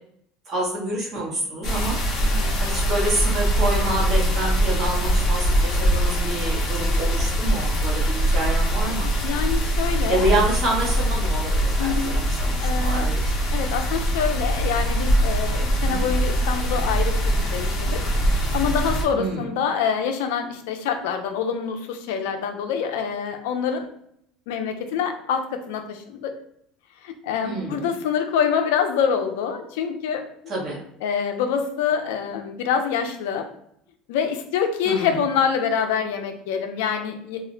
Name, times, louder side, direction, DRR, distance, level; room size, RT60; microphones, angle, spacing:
voice 1, 0.5-2.0 2.3-9.1 10.1-13.3 15.8-16.0 19.1-19.4 27.4-27.9 30.5-30.8 34.8-35.2, right 1 dB, 30° right, -4 dB, 1.0 m, -28 dB
sound 1, 1.6-19.0, equal, 40° left, 0.7 m, -22 dB
voice 2, 2.2-2.6 9.2-10.3 11.8-12.1 12.6-13.1 13.5-18.0 18.5-23.9 24.5-26.3 27.0-30.3 31.0-33.5 34.1-37.4, left 7 dB, 90° left, 6 dB, 0.4 m, -26 dB
2.4 x 2.1 x 3.7 m, 0.70 s
cardioid pair, 145°, 0 cm